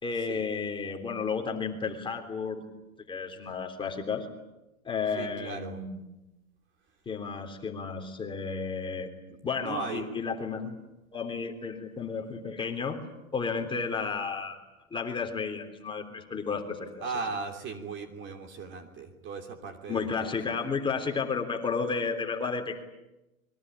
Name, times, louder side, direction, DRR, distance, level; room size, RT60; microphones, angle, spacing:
voice 1, 0.0-2.6 3.1-4.3 4.8-6.0 7.1-9.1 9.4-10.8 11.1-13.0 13.3-14.6 14.9-17.1 19.9-22.8, left 5 dB, 10° left, 3 dB, 3.5 m, -32 dB
voice 2, 5.1-5.8 9.3-10.1 17.0-20.0, right 4 dB, 25° right, 5 dB, 3.1 m, -37 dB
26.5 x 22.5 x 9.9 m, 0.98 s
hypercardioid pair, 125°, 43 cm